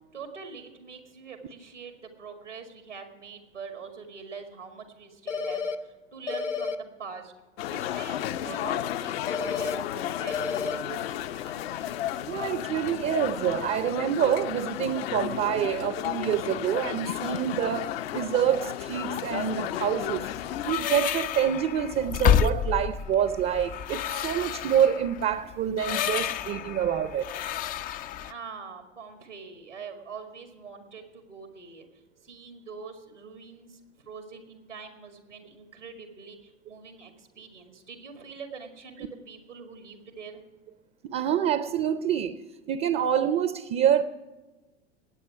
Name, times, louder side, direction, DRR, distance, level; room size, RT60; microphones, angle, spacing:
voice 1, 0.1-7.3 7.7-12.0 28.2-31.9 32.2-33.8 34.1-40.4, right 5 dB, 90° right, 2.0 m, -44 dB
sound 1, 5.3-5.8 6.3-6.8 9.3-9.8 10.3-10.8, left 5 dB, 90° left, 0.8 m, -30 dB
sound 2, 7.6-20.7, left 12 dB, 55° left, 0.7 m, -33 dB
voice 2, 12.3-20.3 20.6-27.2 41.0-42.4 42.7-44.0, right 9 dB, 30° right, 0.6 m, -26 dB
sound 3, 20.0-28.3, left 9 dB, 25° left, 0.4 m, -30 dB
18.5 x 8.5 x 4.7 m
figure-of-eight pair, 85°, 35 cm